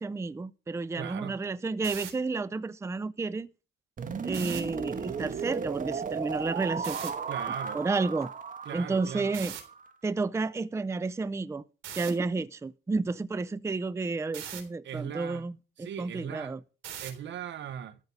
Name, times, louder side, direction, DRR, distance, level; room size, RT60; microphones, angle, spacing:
voice 1, 0.0-3.5 4.2-7.1 7.7-8.3 8.7-9.6 10.0-11.6 12.0-16.6, right 3 dB, 15° right, 0.5 m, -31 dB
voice 2, 1.0-1.4 7.3-7.8 8.7-9.3 14.8-15.5 15.8-16.6 17.0-18.0, right 9 dB, 65° right, 0.9 m, -39 dB
sound 1, 1.7-2.1 4.3-4.6 6.8-7.1 9.3-9.6 11.8-12.1 14.3-14.6 16.8-17.2, right 10 dB, 85° right, 3.6 m, -39 dB
sound 2, 4.0-9.9, right 6 dB, 40° right, 1.6 m, -35 dB
13.5 x 5.3 x 8.2 m
cardioid pair, 90°, 20 cm